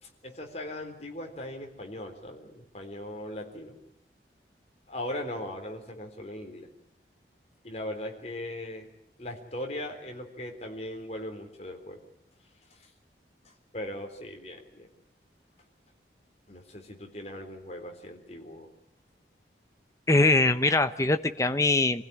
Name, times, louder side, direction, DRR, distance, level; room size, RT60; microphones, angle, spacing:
voice 1, 0.0-3.8 4.9-6.7 7.6-8.9 9.2-12.0 12.8-12.9 13.4-14.9 16.5-18.7, left 1 dB, 35° left, 3 dB, 4.0 m, -39 dB
voice 2, 20.1-22.0, left 2 dB, 15° left, 9 dB, 1.0 m, -22 dB
27.0 x 16.0 x 10.0 m, 0.79 s
head